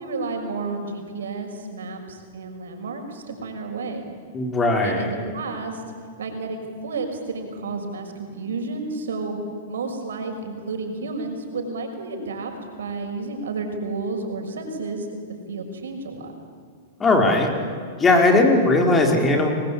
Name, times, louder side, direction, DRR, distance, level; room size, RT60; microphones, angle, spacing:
voice 1, 0.0-4.1 4.8-5.8 6.2-9.4 9.7-12.5 12.8-15.1 15.5-16.3, right 3 dB, 85° right, 4 dB, 6.0 m, -31 dB
voice 2, 4.3-5.1 17.0-17.5 18.0-19.5, left 2 dB, 15° left, 2 dB, 4.7 m, -18 dB
29.5 x 21.5 x 8.8 m, 2.3 s
hypercardioid pair, 130°, 0 cm